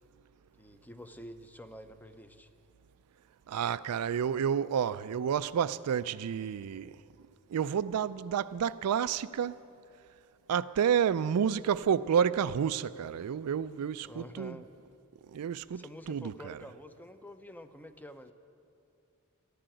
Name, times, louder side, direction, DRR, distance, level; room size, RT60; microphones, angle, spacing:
voice 1, 0.6-2.5 14.0-14.7 15.7-18.3, left 1 dB, 10° left, 0.6 m, -48 dB
voice 2, 3.5-7.0 7.5-9.6 10.5-14.6 15.3-16.6, right 8 dB, 90° right, 0.4 m, -30 dB
13.5 x 11.5 x 9.1 m
head